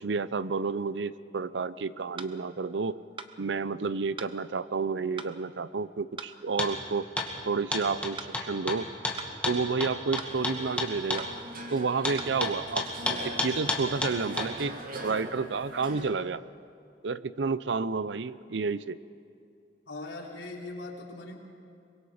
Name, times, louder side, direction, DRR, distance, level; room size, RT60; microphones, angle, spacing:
voice 1, 0.0-3.0 3.4-7.1 7.5-8.9 9.5-11.3 11.7-16.4 17.0-19.0, right 4 dB, 70° right, 16 dB, 0.6 m, -30 dB
sound 1, 2.2-2.4 3.2-3.3 4.2-4.4 5.2-5.4 6.2-6.4 7.2-7.3 8.2-8.4 9.2-9.4 10.2-10.4 11.2-11.4 12.2-12.4, right 5 dB, 30° right, 0.9 m, -41 dB
sound 2, 6.6-6.7 7.2-7.3 7.7-11.2 12.0-14.5, left 2 dB, 5° left, 2.2 m, -30 dB
sound 3, 10.2-16.1, right 1 dB, 55° right, 2.4 m, -42 dB
voice 2, 19.9-21.4, left 2 dB, 85° left, -2 dB, 3.6 m, -40 dB
24.0 x 22.0 x 5.0 m, 2.6 s
head